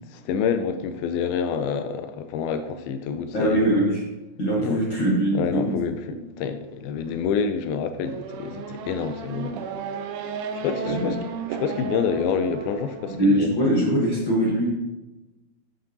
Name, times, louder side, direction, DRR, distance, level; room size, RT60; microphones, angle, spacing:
voice 1, 0.1-3.6 4.6-4.8 5.3-9.6 10.5-11.2 11.6-13.6, left 6 dB, 80° left, 9 dB, 2.3 m, -27 dB
voice 2, 3.3-4.0 4.4-5.7 6.1-6.2 10.8-11.1 13.2-14.7, right 1 dB, 65° left, -5 dB, 1.2 m, -22 dB
Race car auto racing / Accelerating revving vroom, 8.0-13.2, right 5 dB, 85° right, 1.8 m, -34 dB
8.7 x 8.0 x 2.8 m, 1.1 s
omnidirectional pair, 4.5 m